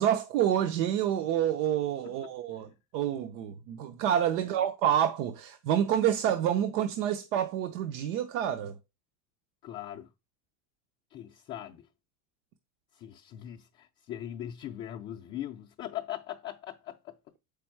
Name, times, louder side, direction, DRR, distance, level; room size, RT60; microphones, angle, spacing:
voice 1, 0.0-8.8, right 10 dB, 70° right, 0.9 m, -28 dB
voice 2, 9.6-10.1 11.1-11.9 12.9-17.1, left 12 dB, 25° left, 0.4 m, -40 dB
7.0 x 5.1 x 4.5 m
supercardioid pair, 135°, 50 cm